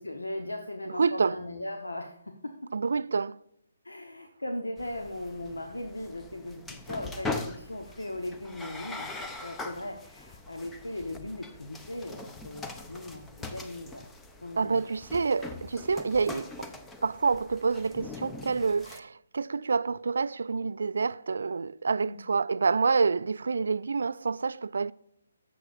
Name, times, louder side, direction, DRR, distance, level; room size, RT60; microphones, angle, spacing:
voice 1, 0.0-2.5 3.8-14.0 14.4-14.8 22.0-22.1, left 1 dB, 75° left, 1.0 m, -38 dB
voice 2, 0.9-1.4 2.7-3.4 14.6-16.7 17.0-24.9, right 4 dB, 60° right, 0.3 m, -28 dB
sound 1, 4.8-19.0, left 3 dB, 10° left, 0.6 m, -42 dB
14.5 x 6.7 x 2.5 m
figure-of-eight pair, 140°, 0 cm